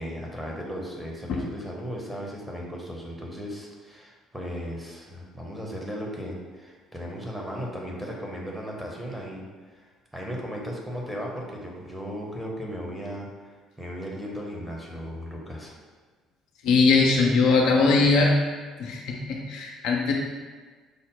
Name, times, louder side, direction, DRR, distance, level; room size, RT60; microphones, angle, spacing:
voice 1, 0.0-15.7, equal, 5° right, -2 dB, 0.9 m, -36 dB
voice 2, 16.6-18.3 18.8-20.1, left 4 dB, 60° left, -1 dB, 0.5 m, -21 dB
5.2 x 2.0 x 3.8 m, 1.4 s
figure-of-eight pair, 55°, 0 cm